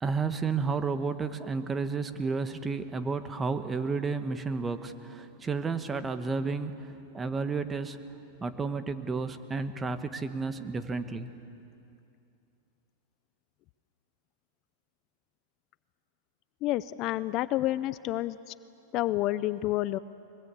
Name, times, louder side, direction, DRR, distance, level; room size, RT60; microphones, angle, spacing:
voice 1, 0.0-8.0 8.4-11.3, right 4 dB, 15° right, 10 dB, 1.2 m, -32 dB
voice 2, 16.6-18.5 18.9-20.0, left 15 dB, 40° left, 15 dB, 0.5 m, -29 dB
23.0 x 22.0 x 8.3 m, 2.7 s
supercardioid pair, 135°, 0 cm